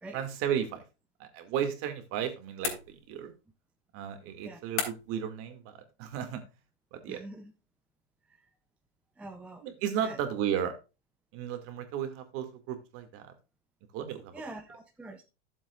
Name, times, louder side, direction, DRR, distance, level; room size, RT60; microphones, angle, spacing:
voice 1, 0.1-0.8 1.2-3.3 3.9-6.4 6.9-7.2 9.6-10.8 11.3-13.3 13.9-14.4, right 9 dB, 40° right, 7 dB, 2.1 m, -34 dB
sound 1, 2.6-3.4 4.8-5.3, left 6 dB, 75° left, 3.6 m, -35 dB
voice 2, 7.1-7.5 8.3-8.5 9.2-9.6 10.0-10.2 14.3-15.2, right 2 dB, 5° right, 5 dB, 0.4 m, -44 dB
13.5 x 7.4 x 2.3 m, 0.28 s
supercardioid pair, 145°, 35 cm